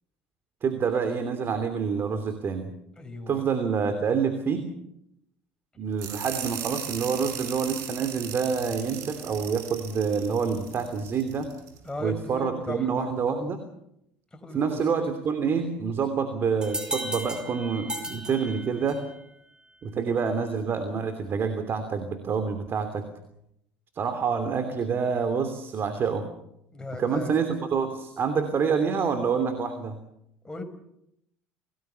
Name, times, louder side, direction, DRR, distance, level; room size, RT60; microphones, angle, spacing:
voice 1, 0.6-2.7 3.3-4.7 5.8-11.5 12.0-13.6 14.5-19.0 19.8-23.0 23.9-26.3 26.9-30.0, right 6 dB, 45° right, 8 dB, 3.0 m, -27 dB
voice 2, 3.0-3.4 11.8-13.1 14.3-14.8 26.7-27.3 30.4-30.6, left 2 dB, 15° left, 5 dB, 5.2 m, -37 dB
sound 1, 6.0-11.8, right 9 dB, 65° right, 5.9 m, -38 dB
sound 2, 16.6-19.2, right 1 dB, 15° right, 6.2 m, -35 dB
27.5 x 19.0 x 6.9 m, 0.80 s
hypercardioid pair, 70°, 5 cm